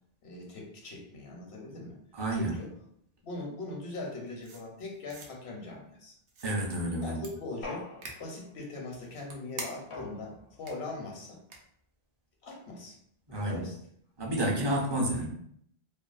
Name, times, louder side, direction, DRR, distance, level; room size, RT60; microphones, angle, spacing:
voice 1, 0.2-2.0 2.4-2.7 3.2-6.1 7.0-7.9 8.2-11.4 12.4-13.0 13.3-13.8, left 2 dB, 90° left, 0 dB, 1.0 m, -41 dB
voice 2, 2.1-2.6 6.4-7.2 13.3-13.6 14.2-15.3, right 1 dB, 35° right, -2 dB, 0.5 m, -30 dB
sound 1, 4.4-5.3 6.3-6.7 7.2-7.3 8.0-8.2 8.9-10.0 10.7-10.8 11.5-11.6, right 3 dB, 70° right, 0.7 m, -44 dB
sound 2, 7.6-8.6 9.9-10.7, left 3 dB, 45° left, 0.4 m, -44 dB
2.6 x 2.2 x 2.4 m, 0.66 s
omnidirectional pair, 1.1 m